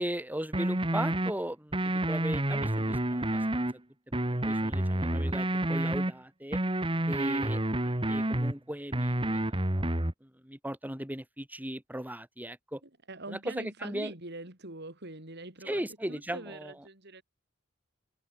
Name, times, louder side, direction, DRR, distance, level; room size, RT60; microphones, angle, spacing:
voice 1, 0.0-3.6 4.1-6.6 7.1-7.6 8.1-9.9 10.2-12.8 13.3-14.1 15.6-16.7, right 1 dB, 10° right, 5.0 m, -37 dB
sound 1, 0.5-1.3 1.7-3.7 4.1-6.1 6.5-8.5 8.9-10.1, right 1 dB, 25° right, 2.0 m, -29 dB
voice 2, 12.8-15.8 16.1-17.2, right 2 dB, 55° right, 5.9 m, -44 dB
head